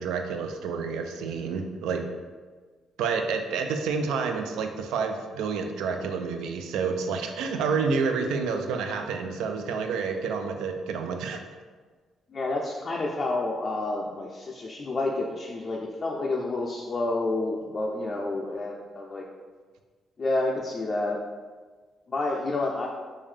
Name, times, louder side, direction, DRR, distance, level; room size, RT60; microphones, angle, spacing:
voice 1, 0.0-2.1 3.0-11.4, right 5 dB, 90° right, 5 dB, 0.3 m, -29 dB
voice 2, 12.3-19.3 20.2-21.2 22.1-22.9, left 2 dB, 40° left, -2 dB, 0.4 m, -29 dB
3.7 x 2.6 x 3.2 m, 1.4 s
cardioid pair, 90°, 0 cm